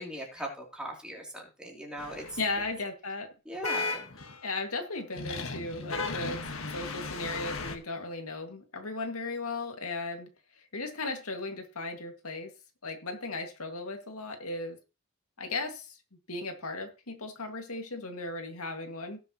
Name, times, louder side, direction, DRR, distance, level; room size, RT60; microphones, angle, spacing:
voice 1, 0.0-2.4 3.4-4.1, right 1 dB, 5° right, -1 dB, 3.2 m, -40 dB
sound 1, 2.0-2.7 3.6-4.6 5.1-7.8, left 3 dB, 65° left, 1.6 m, -36 dB
voice 2, 2.4-3.3 4.4-6.4 6.7-10.3 10.7-12.5 12.8-14.8 15.4-16.0 16.3-19.2, left 3 dB, 85° left, 4 dB, 2.2 m, -36 dB
18.0 x 7.0 x 3.1 m, 0.30 s
head